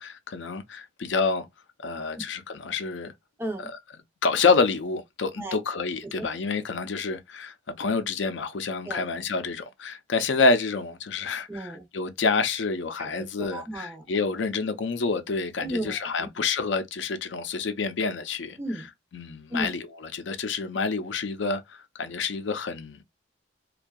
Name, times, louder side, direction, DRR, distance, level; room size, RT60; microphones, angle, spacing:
voice 1, 0.0-1.5 1.8-3.1 4.2-18.6 19.1-19.8 20.1-23.0, left 4 dB, 70° left, 0.5 m, -28 dB
voice 2, 3.4-3.7 5.4-5.6 6.2-6.3 8.9-9.0 11.5-11.9 13.0-13.1 13.4-14.0 15.6-16.3 18.6-18.9 19.5-19.7, right 1 dB, 10° right, 0.5 m, -34 dB
2.6 x 2.3 x 2.2 m
head